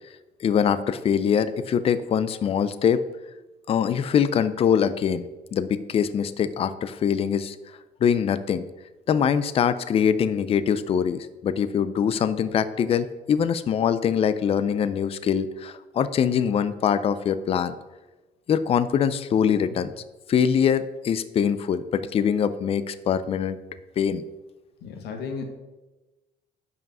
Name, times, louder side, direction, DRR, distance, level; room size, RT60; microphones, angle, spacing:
voice 1, 0.4-3.0 3.7-5.2 5.5-7.6 8.0-8.7 9.1-17.7 18.5-19.9 20.3-23.6 24.0-24.2, left 8 dB, 35° left, 13 dB, 0.4 m, -23 dB
voice 2, 24.8-25.4, left 5 dB, 75° left, 4 dB, 1.1 m, -34 dB
5.5 x 5.1 x 5.3 m, 1.1 s
cardioid pair, 110°, 17 cm